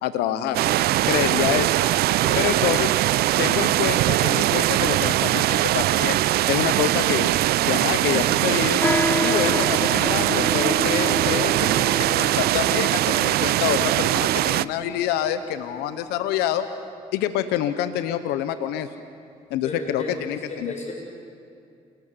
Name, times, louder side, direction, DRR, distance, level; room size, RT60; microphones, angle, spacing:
voice 1, 0.0-0.6 1.1-1.7 2.4-2.9 3.4-6.2 6.5-7.3 7.6-8.8 9.2-16.6 17.1-18.9 19.5-20.7, left 11 dB, 85° left, 11 dB, 0.8 m, -26 dB
sound 1, 0.5-14.6, right 15 dB, 75° right, 0.4 m, -21 dB
voice 2, 2.2-2.7 19.6-20.1 20.5-20.9, left 2 dB, 45° left, 0 dB, 7.4 m, -34 dB
sound 2, 8.8-16.6, left 1 dB, 10° left, 0.9 m, -30 dB
28.0 x 18.5 x 7.2 m, 2.5 s
hypercardioid pair, 45°, 16 cm